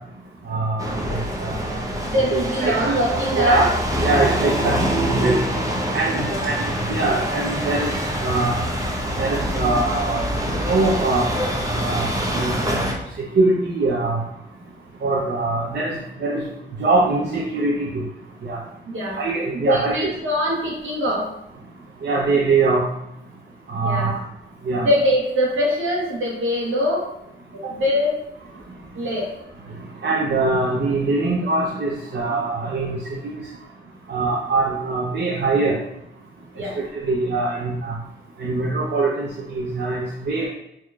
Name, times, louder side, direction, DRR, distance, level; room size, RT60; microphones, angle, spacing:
voice 1, 0.5-1.8 2.3-2.9 3.4-3.7 4.0-5.4 5.9-6.6 6.9-7.9 8.2-8.6 9.2-10.2 10.6-11.3 11.8-12.1 12.4-12.9 13.3-14.2 15.0-15.9 16.2-16.4 16.8-18.0 18.4-18.6 19.2-20.1 22.0-22.8 23.7-24.1 24.7-24.9 30.0-33.4 34.1-35.8 36.9-37.9 38.4-40.5, right 3 dB, 55° right, -4 dB, 0.7 m, -22 dB
sound 1, 0.8-12.9, equal, 15° right, 0.8 m, -25 dB
voice 2, 2.0-3.7 6.2-6.4 18.9-19.2 19.5-21.3 23.8-24.2 24.8-27.1 27.5-28.2 28.9-29.3 36.5-36.8, equal, 75° right, -3 dB, 1.4 m, -23 dB
4.6 x 2.9 x 2.4 m, 0.83 s
cardioid pair, 55°, 21 cm